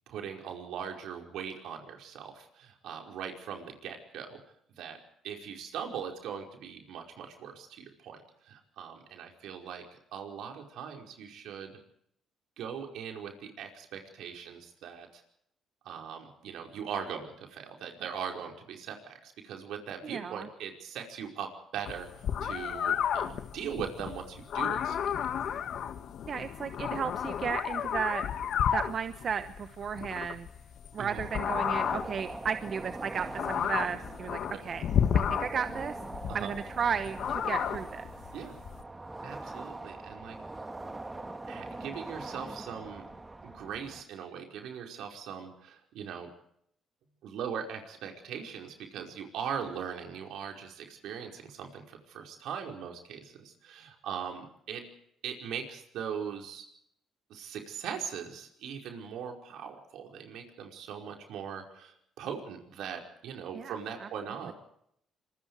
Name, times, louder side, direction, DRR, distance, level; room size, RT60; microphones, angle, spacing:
voice 1, 0.1-4.4 4.8-11.8 12.6-15.2 15.8-25.3 25.5-25.6 31.0-31.2 34.5-34.6 36.3-36.5 38.3-38.6 39.2-40.4 40.8-43.1 43.4-46.3 47.2-54.9 55.2-56.7 57.3-64.5, right 7 dB, 80° right, 3 dB, 5.1 m, -40 dB
voice 2, 20.0-20.5 26.2-28.2 28.7-30.5 30.9-34.8 35.1-36.0 36.3-38.0 63.5-63.7 64.0-64.1, right 7 dB, 50° right, 10 dB, 1.1 m, -34 dB
sound 1, 21.9-38.8, left 9 dB, 65° left, 1.9 m, -32 dB
sound 2, 31.0-44.0, right 2 dB, 20° right, 2.0 m, -42 dB
26.0 x 22.0 x 4.9 m, 0.71 s
cardioid pair, 80°, 0 cm